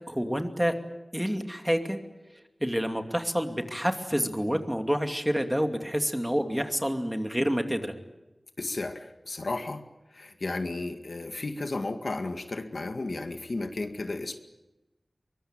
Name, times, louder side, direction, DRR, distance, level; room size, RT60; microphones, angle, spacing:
voice 1, 0.1-0.8 1.1-2.0 2.6-7.9, equal, 5° right, 5 dB, 2.5 m, -28 dB
voice 2, 8.6-9.8 10.1-14.4, left 2 dB, 70° left, 6 dB, 2.0 m, -33 dB
23.5 x 22.5 x 9.0 m, 1.0 s
wide cardioid pair, 70°, 0 cm